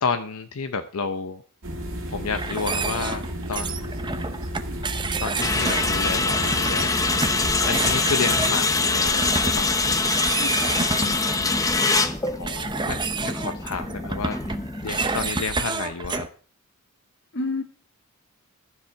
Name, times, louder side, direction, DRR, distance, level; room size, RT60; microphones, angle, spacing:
voice 1, 0.0-1.4 2.1-3.9 4.8-4.9 5.2-6.9 7.7-9.8 12.4-14.4 14.8-16.3, left 5 dB, 80° left, 8 dB, 0.7 m, -30 dB
sound 1, 1.6-8.0, equal, 65° right, 2.3 m, -33 dB
sound 2, 2.3-16.3, right 4 dB, 20° right, 0.7 m, -30 dB
sound 3, 5.4-15.3, left 3 dB, 15° left, 0.8 m, -24 dB
voice 2, 10.4-11.7 17.3-17.6, left 3 dB, 55° left, 8 dB, 1.6 m, -32 dB
12.5 x 7.4 x 5.7 m, 0.42 s
head